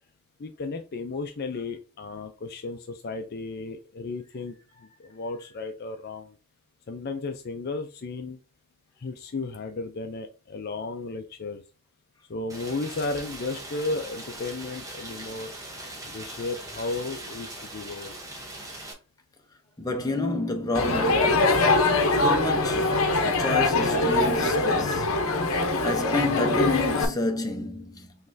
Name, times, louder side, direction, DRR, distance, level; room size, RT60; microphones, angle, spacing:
voice 1, 0.4-4.6 5.0-6.4 6.9-8.4 9.0-11.6 12.3-15.5 16.0-18.2, left 3 dB, 45° left, 0.5 m, -34 dB
Rain, 12.5-18.9, right 1 dB, 15° right, 0.9 m, -40 dB
voice 2, 19.8-21.7 22.2-25.4 25.8-28.3, left 2 dB, 15° left, 0.7 m, -29 dB
Crowd, 20.7-27.1, left 2 dB, 65° left, 0.8 m, -23 dB
5.7 x 3.1 x 2.6 m
head